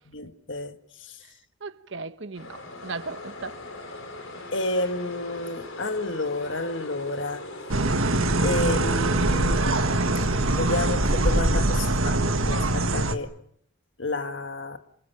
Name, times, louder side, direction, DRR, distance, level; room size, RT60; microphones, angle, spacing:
voice 1, 0.1-0.8 4.5-7.5 8.4-9.6 10.5-13.3 14.0-14.8, left 2 dB, 60° left, 1.6 m, -30 dB
voice 2, 1.6-3.6, right 4 dB, 60° right, 1.1 m, -37 dB
sound 1, 2.4-11.4, left 2 dB, 75° left, 4.2 m, -40 dB
sound 2, 7.7-13.1, right 2 dB, 80° right, 1.6 m, -23 dB
28.5 x 27.0 x 5.8 m
head